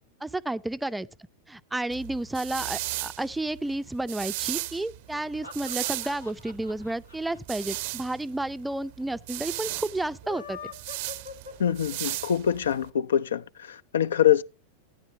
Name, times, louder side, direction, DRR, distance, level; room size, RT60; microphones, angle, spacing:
voice 1, 0.2-1.1 1.5-10.6, right 2 dB, 5° right, 0.5 m, -31 dB
sound 1, 1.9-12.9, right 19 dB, 50° right, 0.6 m, -36 dB
sound 2, 5.1-8.4 8.7-8.8 9.0-9.1 10.1-12.2, left 5 dB, 85° left, 2.2 m, -44 dB
voice 2, 11.6-14.4, left 10 dB, 65° left, 0.4 m, -24 dB
15.0 x 10.0 x 2.6 m
figure-of-eight pair, 90°, 0 cm